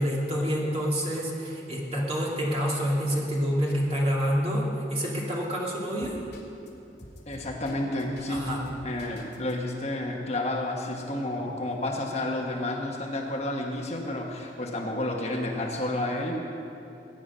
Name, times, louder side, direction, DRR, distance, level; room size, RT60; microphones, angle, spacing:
voice 1, 0.0-6.2 8.3-8.6, equal, 30° right, -4 dB, 2.5 m, -27 dB
sound 1, 6.0-6.7 7.0-9.5, left 1 dB, 60° left, 2.5 m, -47 dB
voice 2, 7.3-8.5 8.8-16.4, left 1 dB, 35° left, 0 dB, 1.3 m, -30 dB
20.5 x 9.6 x 5.6 m, 2.8 s
head